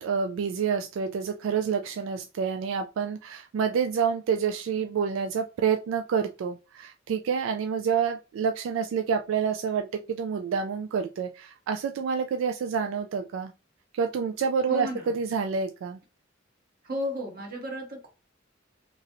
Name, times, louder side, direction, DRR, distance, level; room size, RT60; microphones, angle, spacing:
voice 1, 0.0-13.5 13.9-16.0, right 6 dB, 85° right, 0.3 m, -28 dB
voice 2, 14.7-15.1 16.8-18.1, left 1 dB, 50° right, 1.1 m, -33 dB
3.0 x 2.6 x 2.6 m
head